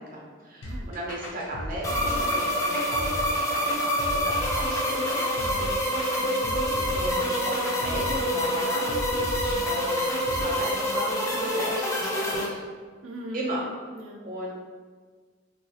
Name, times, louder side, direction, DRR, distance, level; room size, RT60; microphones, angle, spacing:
voice 1, 0.0-5.3 6.5-10.0 10.3-12.6 13.3-13.7 14.2-14.5, right 1 dB, 40° right, -3 dB, 0.6 m, -36 dB
sound 1, 0.6-10.4, equal, 65° left, 0.5 m, -36 dB
sound 2, 1.8-12.5, equal, 15° left, 0.3 m, -27 dB
voice 2, 5.4-5.8 6.1-6.9 13.0-13.4 13.9-14.2, equal, 85° right, 0 dB, 0.4 m, -41 dB
sound 3, 6.2-11.5, right 1 dB, 85° left, 1.3 m, -46 dB
3.9 x 2.3 x 2.7 m, 1.5 s
head